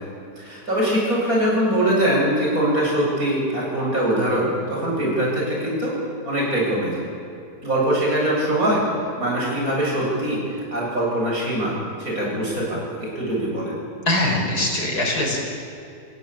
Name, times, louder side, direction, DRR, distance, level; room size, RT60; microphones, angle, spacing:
voice 1, 0.4-5.9 6.2-7.0 7.6-8.8 9.2-13.8, right 1 dB, 55° right, -4 dB, 8.5 m, -22 dB
voice 2, 14.1-15.4, left 1 dB, 65° left, -1 dB, 6.2 m, -22 dB
29.5 x 16.0 x 8.7 m, 2.7 s
omnidirectional pair, 1.8 m